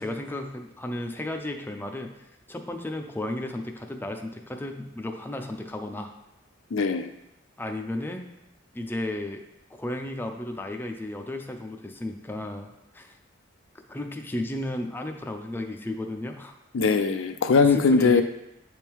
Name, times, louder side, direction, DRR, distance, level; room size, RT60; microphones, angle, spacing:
voice 1, 0.0-2.1 2.5-6.1 7.6-8.3 8.7-9.4 9.7-13.1 13.9-16.6 17.6-18.2, left 1 dB, 10° left, 4 dB, 0.5 m, -33 dB
voice 2, 6.7-7.1 16.7-18.2, left 4 dB, 70° left, 8 dB, 0.5 m, -20 dB
8.0 x 3.6 x 4.5 m, 0.88 s
head